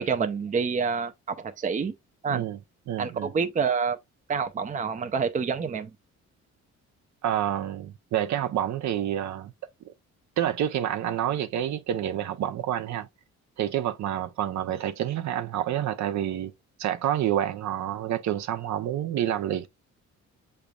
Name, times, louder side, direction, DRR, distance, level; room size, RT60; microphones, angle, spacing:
voice 1, 0.0-1.9 2.2-2.4 3.0-4.0 4.3-5.9, right 5 dB, 25° right, 0.5 m, -27 dB
voice 2, 2.9-3.3 7.2-9.5 9.8-9.9 10.4-13.1 13.6-16.5 16.8-19.7, right 11 dB, 65° right, 0.7 m, -28 dB
6.9 x 3.2 x 2.3 m
cardioid pair, 90°, 30 cm